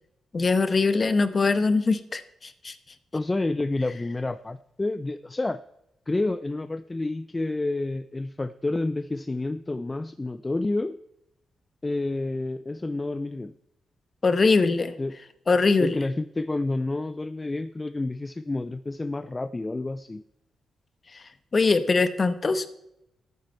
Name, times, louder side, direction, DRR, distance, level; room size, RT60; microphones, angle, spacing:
voice 1, 0.3-2.7 14.2-14.9 15.5-16.0 21.1-21.2 21.5-22.7, left 4 dB, 35° left, 12 dB, 0.9 m, -22 dB
voice 2, 3.1-5.6 6.1-11.0 11.8-13.5 15.0-15.2 15.8-20.2, left 2 dB, 20° left, 13 dB, 0.4 m, -29 dB
13.0 x 9.3 x 4.4 m, 0.83 s
cardioid pair, 105°, 0 cm